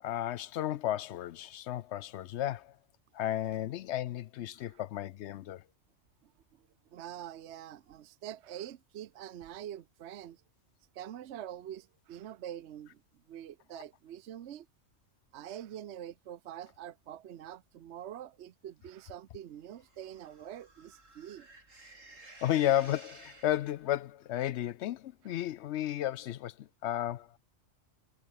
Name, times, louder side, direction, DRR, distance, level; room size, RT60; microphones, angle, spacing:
voice 1, 0.0-2.8 3.1-5.6 22.4-27.4, left 12 dB, 70° left, 0.8 m, -33 dB
voice 2, 6.2-10.4 10.9-13.0 13.3-14.7 15.3-21.5 22.2-22.4, right 11 dB, 65° right, 1.0 m, -45 dB
sound 1, 19.7-24.0, right 2 dB, 90° right, 5.4 m, -55 dB
omnidirectional pair, 1.3 m